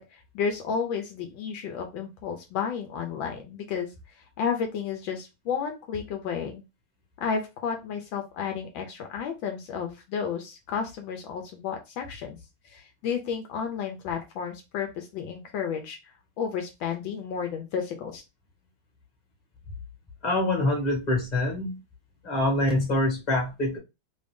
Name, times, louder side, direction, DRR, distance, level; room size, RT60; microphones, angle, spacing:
voice 1, 0.0-3.9 4.4-6.6 7.2-12.4 12.7-16.0 16.4-18.2, left 6 dB, 75° left, 4 dB, 1.4 m, -32 dB
voice 2, 20.2-21.8 22.2-23.8, left 1 dB, 25° left, 0 dB, 1.3 m, -25 dB
3.3 x 2.7 x 3.4 m, 0.24 s
omnidirectional pair, 2.2 m